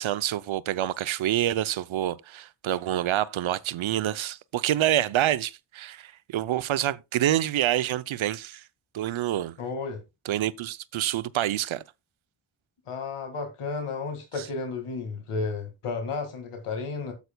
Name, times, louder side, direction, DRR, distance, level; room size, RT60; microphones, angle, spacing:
voice 1, 0.0-8.6 8.9-9.5 10.3-11.8, right 12 dB, 70° right, 0.7 m, -27 dB
voice 2, 9.6-10.0 12.9-17.1, left 4 dB, 85° left, 2.1 m, -32 dB
12.5 x 8.2 x 2.2 m
cardioid pair, 65°, 49 cm